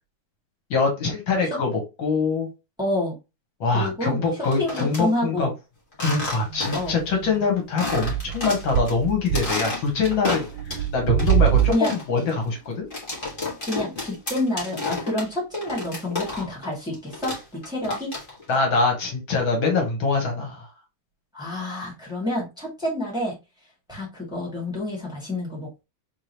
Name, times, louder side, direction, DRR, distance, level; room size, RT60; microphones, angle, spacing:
voice 1, 0.7-2.5 3.6-5.5 6.0-10.5 10.7-12.9 18.5-20.7, left 4 dB, 70° left, 2 dB, 2.1 m, -24 dB
voice 2, 2.8-3.1 3.7-5.5 6.7-7.0 11.7-11.9 13.6-18.1 21.3-23.4 23.9-25.8, left 1 dB, ahead, -5 dB, 1.9 m, -28 dB
sound 1, 4.3-5.0 5.9-7.0 7.3-7.4 7.8-8.9 9.3-10.9 11.2-16.7 16.9-18.5, left 2 dB, 25° left, 1.8 m, -31 dB
sound 2, 6.5-7.5 7.9-9.5 9.9-10.2 10.5-11.7, right 11 dB, 75° right, 1.3 m, -24 dB
3.7 x 3.6 x 3.0 m, 0.26 s
omnidirectional pair, 2.2 m